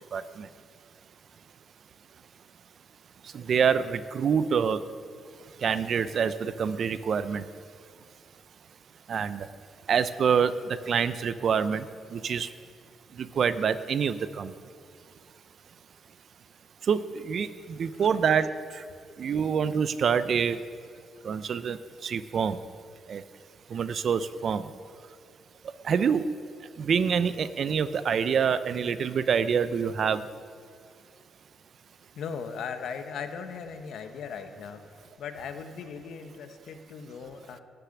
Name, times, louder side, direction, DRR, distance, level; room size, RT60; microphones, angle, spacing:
voice 1, 3.3-4.8 5.6-7.4 9.1-9.5 9.9-11.8 12.1-12.5 13.4-14.5 16.9-17.0 17.3-17.5 17.8-18.5 19.2-20.6 21.2-21.8 22.0-22.6 23.1-23.2 23.7-24.6 25.9-26.2 26.8-30.2, right 7 dB, 50° right, 14 dB, 0.5 m, -26 dB
voice 2, 32.1-34.8 35.2-37.6, left 6 dB, 75° left, 7 dB, 1.2 m, -38 dB
13.0 x 6.7 x 9.8 m, 2.2 s
cardioid pair, 130°, 0 cm